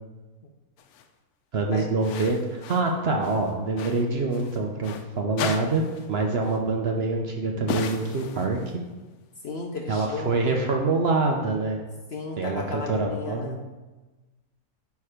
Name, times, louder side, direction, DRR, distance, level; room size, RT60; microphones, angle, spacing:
sound 1, 0.8-1.1 2.0-2.9 3.2-5.1 5.4-6.2 6.4-6.6 7.7-8.8, left 6 dB, 80° left, 1.1 m, -35 dB
voice 1, 1.5-8.6 9.9-11.8 12.4-13.6, right 3 dB, 55° right, 2 dB, 0.8 m, -25 dB
voice 2, 9.4-10.4 12.1-13.6, left 4 dB, 55° left, 2 dB, 0.7 m, -34 dB
8.9 x 3.5 x 5.0 m, 1.2 s
omnidirectional pair, 1.6 m